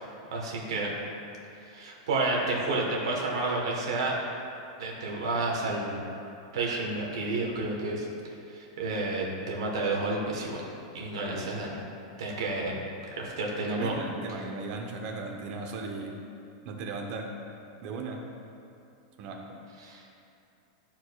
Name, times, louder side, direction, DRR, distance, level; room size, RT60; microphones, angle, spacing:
voice 1, 0.3-0.9 1.7-4.1 4.8-6.0 6.5-8.1 8.5-10.6 10.9-11.7 12.2-12.7 13.1-13.9 19.8-20.0, right 2 dB, 85° right, -2 dB, 1.2 m, -30 dB
voice 2, 11.3-11.6 13.7-16.2 16.6-17.3 17.8-18.3 19.2-19.6, right 3 dB, 35° right, 1 dB, 0.8 m, -37 dB
11.5 x 4.5 x 2.3 m, 2.6 s
supercardioid pair, 170°, 3 cm